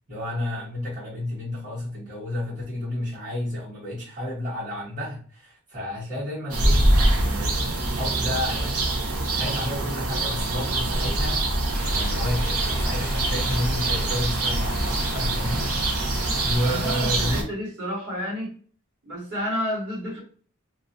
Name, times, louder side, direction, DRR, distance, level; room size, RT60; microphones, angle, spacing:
voice 1, 0.1-6.9 7.2-8.9 9.3-11.4 11.9-15.7 16.4-17.5, left 1 dB, 35° right, -7 dB, 1.3 m, -31 dB
sound 1, 6.5-17.4, right 2 dB, 85° right, 0.7 m, -25 dB
sound 2, 10.9-17.2, left 1 dB, 20° left, 0.3 m, -31 dB
sound 3, 11.7-17.0, equal, 5° right, 0.8 m, -40 dB
voice 2, 16.6-18.6 19.0-20.2, equal, 55° right, -6 dB, 1.3 m, -30 dB
2.5 x 2.0 x 2.6 m, 0.43 s
head